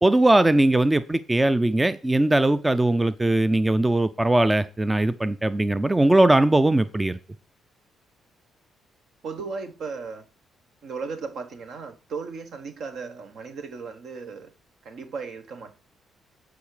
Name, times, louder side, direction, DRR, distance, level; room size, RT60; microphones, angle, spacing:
voice 1, 0.0-7.2, right 1 dB, 15° right, 0.4 m, -20 dB
voice 2, 9.2-10.2 10.8-14.5 14.8-15.7, right 5 dB, 70° right, 1.3 m, -36 dB
10.5 x 4.8 x 4.9 m
cardioid pair, 90°, 0 cm